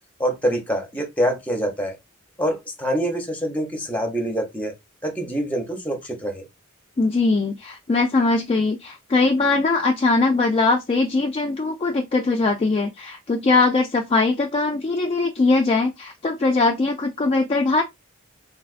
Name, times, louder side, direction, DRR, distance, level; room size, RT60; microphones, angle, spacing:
voice 1, 0.2-2.0 2.4-4.7 5.0-6.4, equal, 5° left, 0.8 m, -25 dB
voice 2, 7.0-17.8, left 3 dB, 25° left, 0.3 m, -21 dB
3.9 x 2.4 x 2.4 m
head